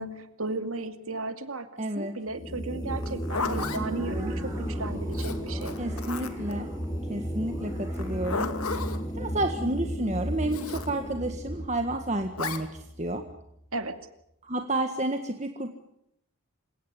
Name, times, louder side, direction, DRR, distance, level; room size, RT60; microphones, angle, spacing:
voice 1, 0.0-1.7 2.0-4.4 4.7-5.7 13.7-14.0, right 2 dB, 75° right, 9 dB, 2.4 m, -35 dB
voice 2, 1.8-2.1 5.8-6.7 7.1-8.5 9.2-13.2 14.4-15.7, right 1 dB, 30° right, 5 dB, 1.7 m, -30 dB
sound 1, 2.3-13.6, equal, 20° left, 2.4 m, -34 dB
sound 2, 2.8-9.7, equal, 15° right, 7.7 m, -43 dB
Zipper (clothing), 3.0-3.8 5.1-6.5 7.9-9.0 10.5-10.9 12.4-12.6, left 4 dB, 85° left, 2.5 m, -33 dB
28.0 x 17.5 x 9.9 m, 0.78 s
head